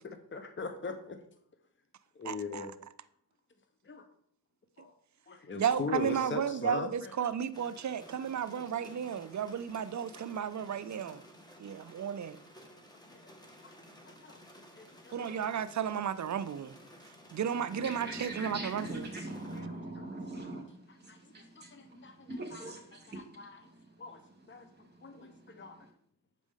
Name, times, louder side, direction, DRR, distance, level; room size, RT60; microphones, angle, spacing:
voice 1, 0.0-1.2 2.1-2.7 3.8-4.1 4.8-4.9 5.3-7.2 13.1-13.3 13.6-13.8 14.0-14.4 14.8-15.4 19.5-19.7 20.0-20.1 21.1-22.7 23.1-23.6 24.0-24.2 24.5-25.8, left 4 dB, 25° left, 1.0 m, -41 dB
voice 2, 2.3-2.7 5.6-11.2 11.6-12.4 15.1-16.7 17.3-19.1, right 8 dB, 40° right, 0.5 m, -33 dB
sound 1, 7.5-19.6, equal, 10° left, 1.6 m, -55 dB
voice 3, 17.5-24.0 24.5-25.9, right 1 dB, 25° right, 2.6 m, -43 dB
8.1 x 5.0 x 3.7 m
cardioid pair, 60°, 43 cm